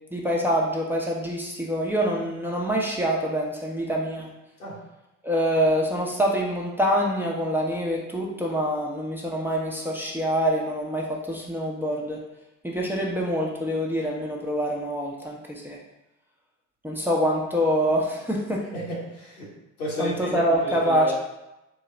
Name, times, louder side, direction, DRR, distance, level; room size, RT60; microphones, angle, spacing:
voice 1, 0.1-4.3 5.2-12.2 12.6-15.8 16.8-18.6 20.0-21.1, equal, 5° right, -3 dB, 0.7 m, -25 dB
voice 2, 18.7-19.5 19.8-21.1, equal, 85° left, -5 dB, 1.0 m, -32 dB
3.8 x 2.1 x 3.8 m, 0.94 s
figure-of-eight pair, 50°, 43 cm